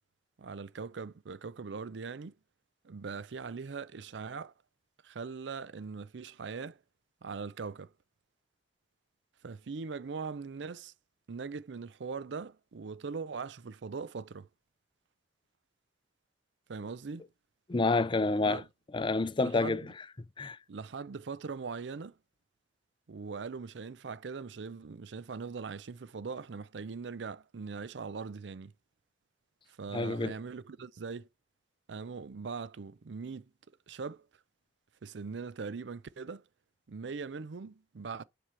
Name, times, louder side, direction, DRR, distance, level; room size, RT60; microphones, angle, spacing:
voice 1, 0.4-2.3 2.8-4.5 5.0-6.8 7.2-7.9 9.4-10.9 11.3-14.5 16.7-17.2 18.4-18.7 19.4-19.8 20.7-22.2 23.1-28.7 29.7-31.3 31.9-33.5 33.9-34.3 35.0-36.4 36.9-38.2, right 5 dB, 75° right, 0.5 m, -41 dB
voice 2, 17.7-18.6 18.9-19.9 20.4-20.6 29.9-30.3, left 3 dB, 30° left, 0.5 m, -28 dB
7.4 x 4.9 x 4.5 m
head